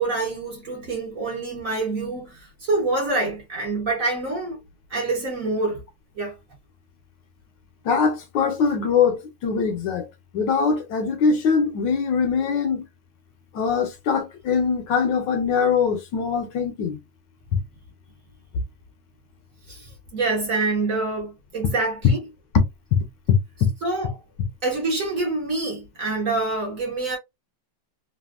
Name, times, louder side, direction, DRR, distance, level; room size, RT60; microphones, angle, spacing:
voice 1, 0.0-4.6 4.9-5.8 6.2-6.4 19.7-22.2 23.8-24.1 24.6-27.2, right 3 dB, 55° right, 1.0 m, -26 dB
voice 2, 7.8-10.1 10.3-12.8 13.5-17.0 17.5-17.6 22.9-23.0 23.3-23.7, left 6 dB, 75° left, 1.2 m, -22 dB
3.3 x 2.4 x 2.3 m
omnidirectional pair, 2.1 m